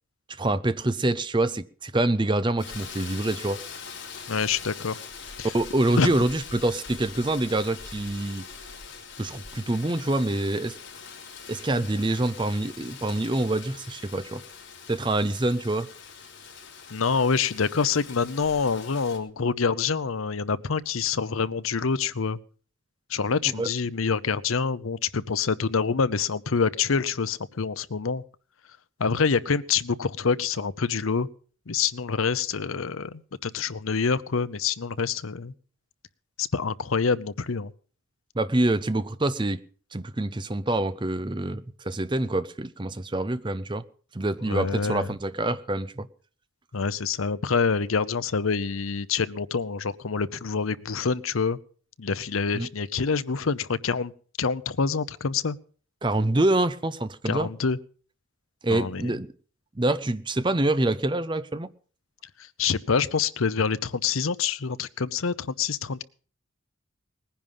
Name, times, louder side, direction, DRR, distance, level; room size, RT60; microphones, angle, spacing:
voice 1, 0.4-3.6 5.5-8.5 9.2-10.7 11.5-14.4 14.9-15.9 23.6-23.7 38.4-39.6 39.9-43.8 44.1-46.1 52.5-52.7 56.0-57.5 58.6-59.3 59.8-61.7, right 2 dB, 25° right, 0.6 m, -26 dB
Rain, 2.6-19.2, left 6 dB, 65° left, 3.9 m, -43 dB
voice 2, 4.3-5.0 5.4-5.5 6.0-6.2 16.9-22.4 23.1-28.2 29.0-31.3 31.7-35.5 36.4-37.7 44.5-45.1 46.7-51.6 52.0-54.1 54.4-55.6 57.3-57.8 58.7-59.1 62.6-66.0, left 5 dB, 85° left, 0.7 m, -26 dB
19.5 x 10.5 x 5.5 m
head